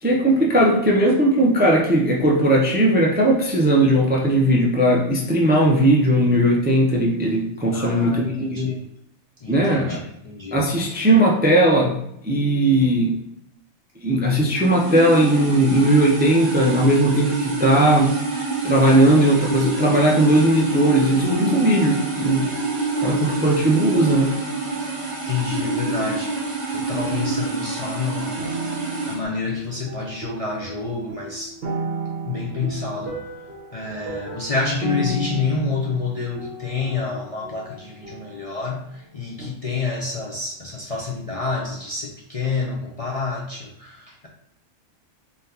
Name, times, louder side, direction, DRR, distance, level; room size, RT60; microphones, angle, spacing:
voice 1, 0.0-8.8 9.5-10.1 10.5-12.0 12.2-13.2 14.0-18.1 18.6-22.4 23.0-24.4, right 1 dB, 15° right, -1 dB, 0.4 m, -18 dB
voice 2, 7.7-8.8 9.4-10.6 25.2-28.4 29.1-31.6 32.2-33.2 33.7-44.3, left 4 dB, 45° left, -3 dB, 0.5 m, -28 dB
sound 1, 14.5-29.2, right 3 dB, 35° right, 1.0 m, -27 dB
sound 2, 20.2-26.7 27.0-27.8 28.4-39.0 39.4-39.5, equal, 55° right, 1.4 m, -34 dB
3.9 x 3.8 x 2.8 m, 0.75 s
omnidirectional pair, 1.3 m